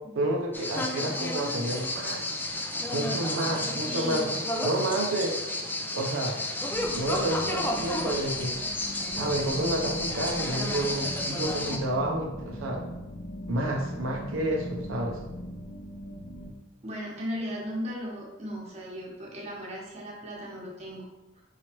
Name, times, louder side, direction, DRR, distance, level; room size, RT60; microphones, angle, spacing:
voice 1, 0.2-2.4 2.9-4.2 4.6-5.4 5.9-6.4 6.9-8.6 9.2-12.9 13.5-15.2, right 1 dB, 85° right, 0 dB, 0.6 m, -30 dB
sound 1, 0.5-11.8, left 1 dB, 10° left, 0.3 m, -31 dB
voice 2, 3.9-4.3 16.8-21.1, equal, 35° right, -3 dB, 1.0 m, -36 dB
sound 2, 6.7-16.5, equal, 55° left, 0.7 m, -40 dB
4.7 x 3.0 x 2.9 m, 1.0 s
head